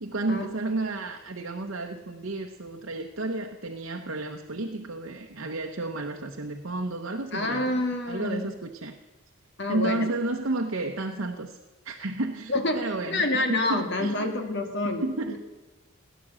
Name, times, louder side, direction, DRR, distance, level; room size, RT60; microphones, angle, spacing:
voice 1, 0.0-8.9 9.7-11.6 11.8-14.1 15.0-15.4, right 2 dB, 65° right, 3 dB, 0.9 m, -32 dB
voice 2, 7.3-8.5 9.6-10.1 12.5-12.8 13.1-15.4, left 2 dB, 55° left, 5 dB, 1.9 m, -27 dB
17.5 x 10.0 x 7.5 m, 1.3 s
head